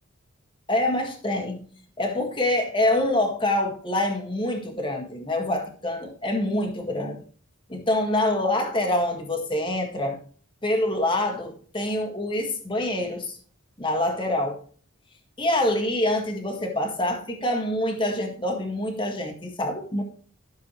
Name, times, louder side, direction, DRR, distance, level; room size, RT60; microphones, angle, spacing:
voice 1, 0.7-1.6 2.0-7.2 7.7-10.2 10.6-13.4 13.8-14.6 15.4-20.0, left 1 dB, 25° left, 3 dB, 1.8 m, -25 dB
13.0 x 6.8 x 3.2 m, 0.43 s
head